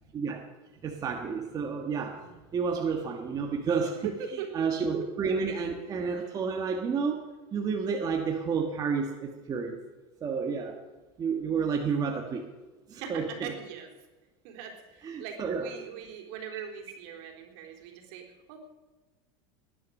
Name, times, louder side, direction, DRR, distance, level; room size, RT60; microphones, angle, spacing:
voice 1, 0.8-7.2 7.5-9.8 10.2-10.8 11.2-12.4 12.9-13.5 15.0-15.7 16.5-16.6, right 5 dB, 25° right, 1 dB, 1.5 m, -30 dB
voice 2, 4.0-4.5 6.2-6.3 13.0-13.9 14.4-18.6, right 8 dB, 65° right, 2 dB, 4.0 m, -40 dB
20.0 x 10.0 x 6.5 m, 1.2 s
supercardioid pair, 140°, 14 cm